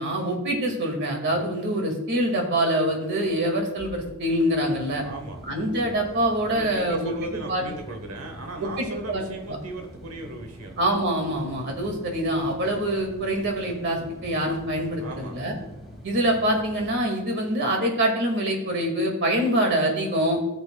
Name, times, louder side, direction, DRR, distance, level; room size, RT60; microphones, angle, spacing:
voice 1, 0.0-5.0 5.5-7.1 7.5-7.7 8.6-9.6 10.8-15.5 16.0-20.4, right 1 dB, 55° right, 2 dB, 2.0 m, -25 dB
sound 1, 3.2-17.0, equal, ahead, 2.5 m, -45 dB
voice 2, 5.0-5.4 6.5-10.8 11.7-11.9 15.0-15.4, right 2 dB, 90° right, 4 dB, 1.0 m, -37 dB
15.0 x 7.2 x 2.2 m, 0.98 s
head